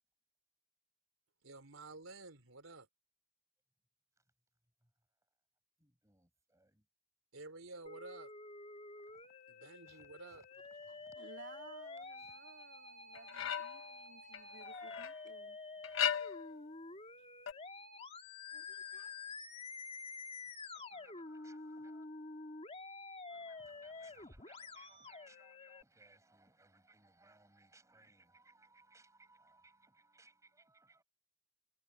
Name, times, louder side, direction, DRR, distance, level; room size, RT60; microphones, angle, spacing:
voice 1, 1.4-2.9 7.3-8.3 9.5-10.4, right 3 dB, 85° right, 3.7 m, -51 dB
voice 2, 5.8-6.8 9.0-9.2 9.9-11.2 12.2-12.3 20.7-22.1 23.3-31.0, right 3 dB, 15° right, 7.4 m, -66 dB
Musical instrument, 7.9-25.8, left 3 dB, 30° left, 3.2 m, -49 dB
voice 3, 10.9-15.6 18.5-19.2, right 3 dB, 60° right, 3.6 m, -58 dB
sound 1, 13.2-13.9 14.3-15.2 15.8-16.6 17.5-17.6, left 8 dB, 70° left, 0.9 m, -37 dB
head